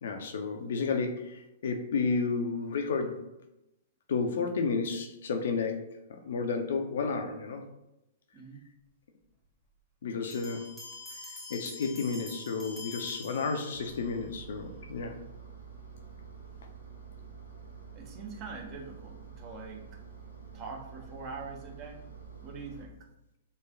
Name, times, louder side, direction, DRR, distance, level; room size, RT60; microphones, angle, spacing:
voice 1, 0.0-3.2 4.1-7.7 10.0-10.7 11.1-11.2 11.5-15.2, left 4 dB, 60° left, 5 dB, 0.3 m, -32 dB
sound 1, 10.3-14.1, left 3 dB, 5° left, 0.8 m, -45 dB
Engine, 13.7-22.9, right 5 dB, 80° right, 0.5 m, -48 dB
voice 2, 17.9-19.9 20.5-22.1 22.4-23.0, right 4 dB, 30° right, 1 dB, 0.5 m, -43 dB
3.0 x 2.3 x 2.3 m, 0.89 s
figure-of-eight pair, 105°, 0 cm